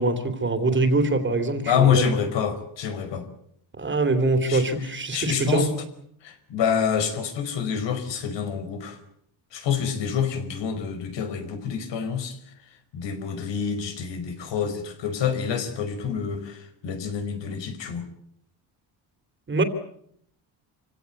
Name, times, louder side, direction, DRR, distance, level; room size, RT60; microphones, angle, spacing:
voice 1, 0.0-2.0 3.8-5.7 19.5-19.6, right 2 dB, 25° right, 9 dB, 3.1 m, -23 dB
voice 2, 1.6-3.3 4.5-5.7 6.2-9.0 9.5-12.4 12.9-18.0, left 7 dB, 70° left, 9 dB, 5.2 m, -27 dB
27.5 x 17.0 x 9.5 m, 0.70 s
cardioid pair, 145°, 45 cm